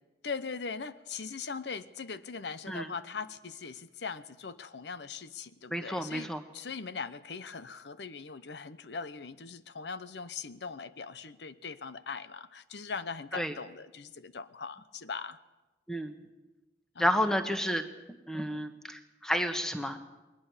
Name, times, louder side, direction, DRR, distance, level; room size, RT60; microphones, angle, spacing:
voice 1, 0.2-15.4 16.9-17.3, left 5 dB, 80° left, 14 dB, 0.8 m, -40 dB
voice 2, 5.7-6.4 13.3-13.5 15.9-16.1 17.0-17.8 18.3-20.0, equal, 5° left, 7 dB, 1.2 m, -30 dB
21.5 x 19.5 x 7.2 m, 1.1 s
head